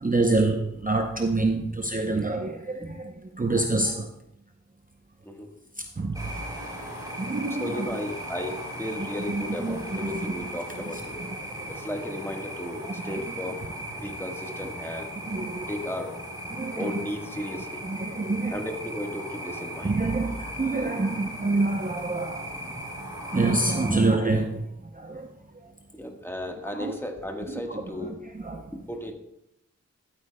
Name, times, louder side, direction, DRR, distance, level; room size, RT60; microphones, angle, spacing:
voice 1, 0.0-4.1 5.8-6.4 7.2-7.9 9.3-10.3 11.2-11.4 13.0-13.1 15.3-15.7 16.5-17.0 17.8-18.6 19.8-22.5 23.3-25.3 26.8-27.0 27.5-28.1 28.3-28.7, right 2 dB, 30° right, 0.6 m, -27 dB
sound 1, 6.1-23.9, right 1 dB, 10° right, 3.0 m, -37 dB
voice 2, 7.6-11.3 11.7-13.7 13.9-15.1 15.7-16.2 16.8-17.8 18.5-20.0 20.8-21.1 23.9-24.0 25.9-28.2 28.7-29.1, left 1 dB, 10° left, 1.3 m, -35 dB
13.5 x 8.4 x 2.2 m
wide cardioid pair, 55°, 30 cm